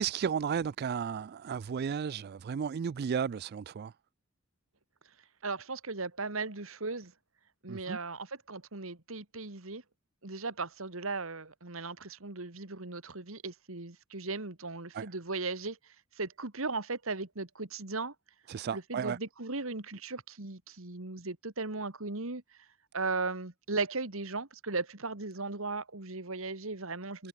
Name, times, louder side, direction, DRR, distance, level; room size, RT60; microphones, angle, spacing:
voice 1, 0.0-3.9 7.7-8.0 14.9-15.1 18.5-19.2, right 7 dB, 45° right, 0.3 m, -33 dB
voice 2, 5.4-7.1 7.6-9.8 10.2-15.8 16.2-18.1 18.7-22.4 22.9-27.3, right 3 dB, 70° right, 2.1 m, -37 dB
head